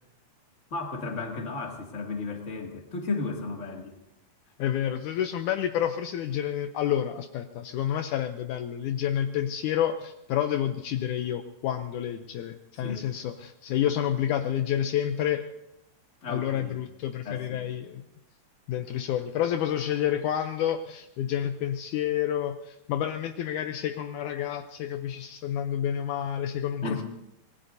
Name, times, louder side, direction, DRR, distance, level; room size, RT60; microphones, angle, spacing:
voice 1, 0.7-4.0 12.8-13.0 16.2-16.8 17.2-17.7 26.8-27.0, left 3 dB, 25° left, 0 dB, 2.1 m, -34 dB
voice 2, 4.6-15.5 16.3-18.0 18.7-27.0, left 10 dB, 75° left, 7 dB, 2.0 m, -29 dB
25.5 x 19.5 x 2.7 m, 0.88 s
omnidirectional pair, 3.8 m